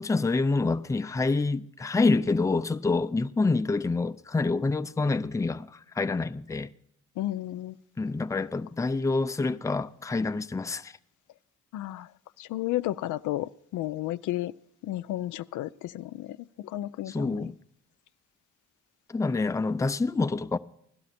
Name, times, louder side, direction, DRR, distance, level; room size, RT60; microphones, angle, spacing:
voice 1, 0.0-6.7 8.0-11.0 17.1-17.6 19.1-20.6, left 3 dB, 10° left, 0.5 m, -27 dB
voice 2, 7.2-7.8 11.7-12.1 12.4-14.5 14.8-17.5, left 15 dB, 80° left, 0.5 m, -33 dB
17.0 x 12.0 x 4.2 m
cardioid pair, 90°, 30 cm